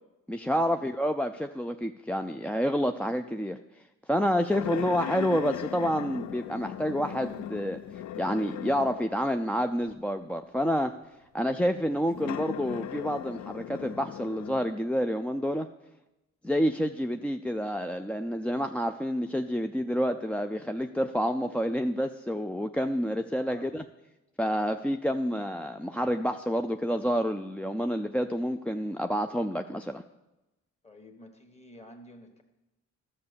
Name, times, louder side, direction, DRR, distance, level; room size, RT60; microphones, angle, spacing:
voice 1, 0.3-3.6 4.1-7.8 8.2-10.9 11.3-15.7 16.4-23.8 24.4-30.0, equal, 5° left, 6 dB, 0.3 m, -28 dB
sound 1, 4.5-9.2 9.9-10.0 12.1-14.7, left 11 dB, 70° left, 0.5 m, -38 dB
voice 2, 30.8-32.4, left 1 dB, 20° left, 4 dB, 1.7 m, -51 dB
12.0 x 6.5 x 6.9 m, 0.98 s
cardioid pair, 90°, 30 cm